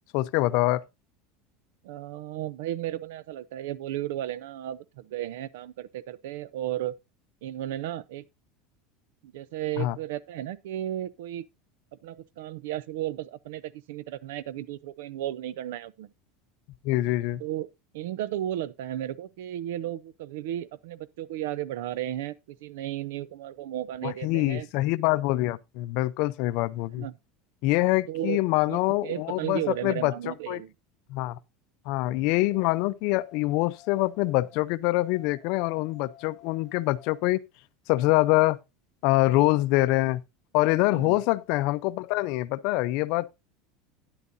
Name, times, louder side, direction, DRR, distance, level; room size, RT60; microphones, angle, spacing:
voice 1, 0.1-0.8 9.8-10.0 16.8-17.4 24.0-27.1 27.6-30.6 31.1-31.4 31.9-37.4 37.9-38.6 39.0-40.2 40.5-43.3, left 19 dB, 55° left, 0.5 m, -25 dB
voice 2, 1.8-6.9 7.4-8.2 9.2-11.5 12.0-16.1 17.4-17.7 17.9-24.7 27.0-27.1 28.1-28.4 28.7-30.7 40.9-41.2, right 12 dB, 80° right, 0.6 m, -34 dB
sound 1, 32.5-34.6 35.0-37.3, left 11 dB, 25° left, 1.0 m, -55 dB
12.0 x 9.9 x 2.6 m
supercardioid pair, 165°, 0 cm